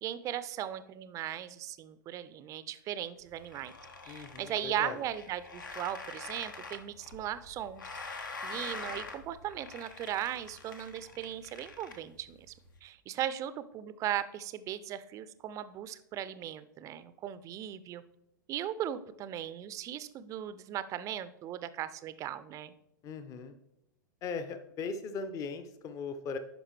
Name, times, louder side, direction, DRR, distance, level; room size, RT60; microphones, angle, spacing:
voice 1, 0.0-3.7 4.0-7.8 8.4-12.4 12.8-18.0 18.5-22.7, right 11 dB, 30° right, 14 dB, 0.5 m, -38 dB
sound 1, 3.2-12.8, left 3 dB, 75° left, 1.1 m, -45 dB
voice 2, 4.1-5.0 23.0-23.6 24.2-26.4, left 5 dB, 30° left, 9 dB, 0.7 m, -39 dB
11.0 x 4.9 x 3.2 m, 0.83 s
figure-of-eight pair, 95°, 11 cm